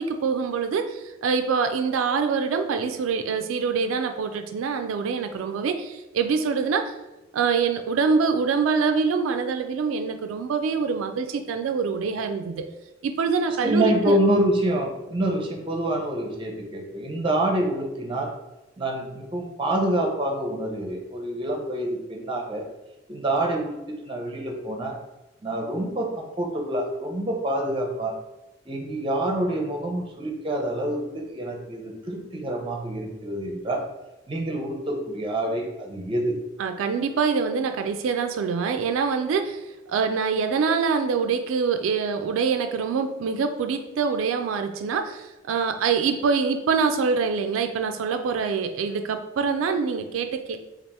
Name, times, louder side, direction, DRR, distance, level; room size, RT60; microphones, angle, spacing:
voice 1, 0.0-6.9 7.3-12.7 13.0-14.2 36.6-50.6, right 5 dB, 85° right, 7 dB, 0.3 m, -25 dB
voice 2, 13.6-18.3 18.8-22.6 23.1-25.0 25.4-28.1 28.7-33.8 34.3-36.4, right 1 dB, 25° right, 2 dB, 0.6 m, -27 dB
3.4 x 2.4 x 4.1 m, 1.0 s
head